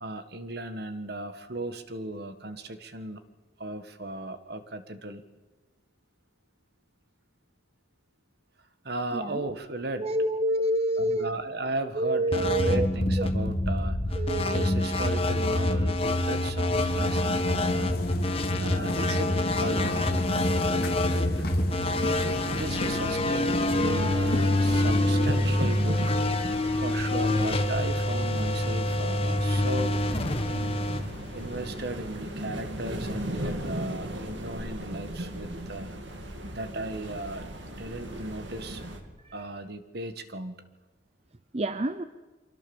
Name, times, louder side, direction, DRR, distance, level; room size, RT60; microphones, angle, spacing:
voice 1, 0.0-3.2 3.6-5.2 8.8-10.1 11.0-14.2 14.5-17.9 18.6-20.3 20.7-21.5 22.2-26.0 26.7-30.0 30.5-30.7 31.3-36.0 36.5-38.8 39.3-40.5, right 1 dB, 55° right, 9 dB, 1.6 m, -36 dB
voice 2, 9.1-9.5 10.0-11.3 11.9-12.9 13.2-13.3 14.2-14.7 38.1-38.3 39.2-39.3 41.5-42.0, right 1 dB, 35° right, 11 dB, 0.7 m, -28 dB
sound 1, 12.3-31.9, left 1 dB, 30° left, 1.5 m, -26 dB
sound 2, 16.7-25.7, left 1 dB, 50° left, 3.3 m, -34 dB
sound 3, 22.2-39.0, right 1 dB, 70° right, 2.6 m, -37 dB
24.5 x 24.0 x 7.1 m, 1.3 s
head